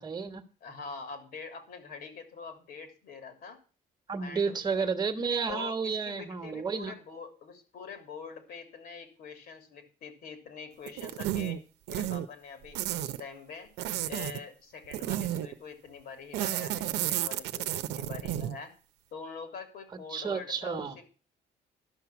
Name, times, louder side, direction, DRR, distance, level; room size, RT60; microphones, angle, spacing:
voice 1, 0.0-0.4 4.1-6.9 20.1-21.0, right 5 dB, 25° right, 5 dB, 1.3 m, -31 dB
voice 2, 0.6-3.6 4.2-4.9 5.5-11.6 11.9-13.7 14.1-18.7 19.1-21.0, left 5 dB, 65° left, 7 dB, 3.0 m, -44 dB
sound 1, 10.9-11.6 11.9-12.3 12.7-13.2 13.8-14.4 14.9-15.5 16.3-18.6, right 13 dB, 90° right, 0.8 m, -32 dB
12.0 x 6.0 x 7.1 m, 0.37 s
cardioid pair, 110°, 17 cm